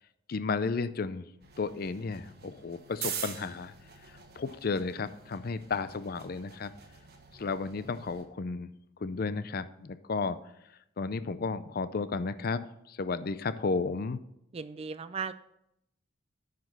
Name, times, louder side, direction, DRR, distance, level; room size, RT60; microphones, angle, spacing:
voice 1, 0.3-1.3 1.6-3.7 4.4-6.7 7.3-8.7 9.0-10.4 11.0-14.2, left 4 dB, 50° left, 13 dB, 0.5 m, -33 dB
sound 1, 1.4-8.2, right 7 dB, 55° right, 1.2 m, -44 dB
voice 2, 14.5-15.3, right 5 dB, 30° right, 14 dB, 0.3 m, -36 dB
9.5 x 5.1 x 6.0 m, 0.81 s
head